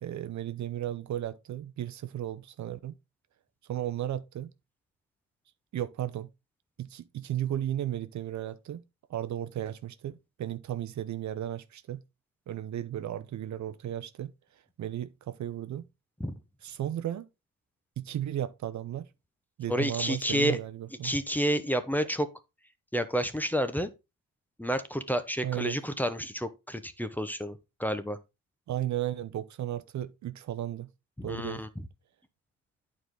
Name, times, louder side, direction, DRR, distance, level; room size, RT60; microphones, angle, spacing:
voice 1, 0.0-3.0 3.7-4.5 5.7-6.3 6.8-8.8 9.1-10.1 10.4-12.0 12.5-14.3 14.8-15.9 16.6-17.3 18.0-19.1 19.6-21.1 25.4-25.8 28.7-30.9 31.2-31.6, right 12 dB, 60° right, 0.7 m, -34 dB
voice 2, 19.7-20.6 21.0-22.3 22.9-23.9 24.6-28.2 31.2-31.7, equal, 5° left, 0.9 m, -30 dB
9.2 x 4.9 x 3.7 m
cardioid pair, 100°, 34 cm